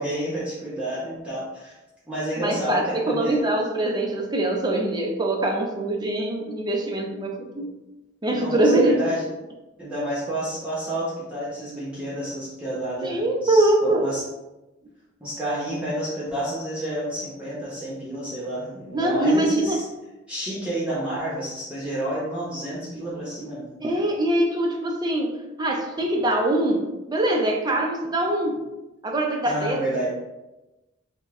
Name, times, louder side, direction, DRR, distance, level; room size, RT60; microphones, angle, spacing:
voice 1, 0.0-1.7 2.1-2.8 3.0-3.4 8.3-9.3 9.8-14.2 15.2-19.8 20.3-23.7 29.4-30.1, right 1 dB, 5° right, -9 dB, 0.9 m, -30 dB
voice 2, 2.4-7.7 8.2-9.0 13.0-14.0 18.9-19.8 23.8-28.6 29.0-29.8, right 1 dB, 20° right, 1 dB, 0.6 m, -23 dB
5.2 x 2.2 x 3.5 m, 1.0 s
head